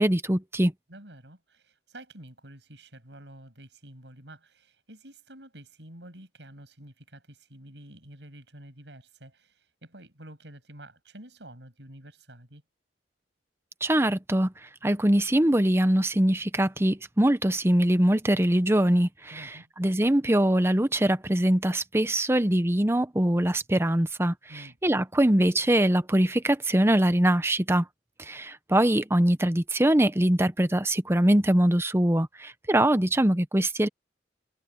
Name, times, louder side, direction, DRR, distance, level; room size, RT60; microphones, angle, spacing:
voice 1, 0.0-0.7 13.8-14.5 14.8-19.4 19.8-24.3 24.8-27.8 28.2-33.9, right 1 dB, 15° right, 0.8 m, -23 dB
voice 2, 0.9-12.6 19.3-19.7 24.5-24.8, right 1 dB, 75° right, 7.3 m, -49 dB
head